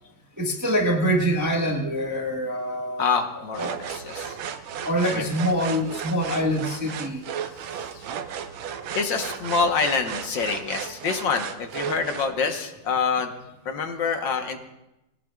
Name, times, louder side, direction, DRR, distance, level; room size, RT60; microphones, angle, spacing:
voice 1, 0.4-3.1 3.6-3.8 4.8-7.2, equal, 10° right, 0 dB, 1.1 m, -25 dB
voice 2, 3.0-4.4 5.1-5.3 7.5-8.1 9.0-13.3 13.7-14.6, left 5 dB, 65° left, 5 dB, 1.8 m, -26 dB
sound 1, 3.5-12.3, right 8 dB, 75° right, 1.5 m, -35 dB
20.5 x 17.5 x 2.4 m, 0.92 s
omnidirectional pair, 2.2 m